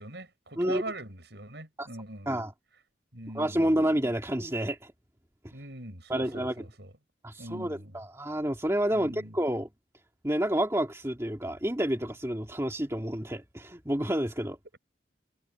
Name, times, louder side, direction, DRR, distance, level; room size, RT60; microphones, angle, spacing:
voice 1, 0.0-2.4 3.1-3.7 5.5-6.9 7.4-8.0 8.9-9.4, right 1 dB, 65° right, 6.2 m, -41 dB
voice 2, 3.3-4.9 6.1-6.7 7.2-9.7 10.2-14.6, right 1 dB, 15° right, 2.1 m, -29 dB
head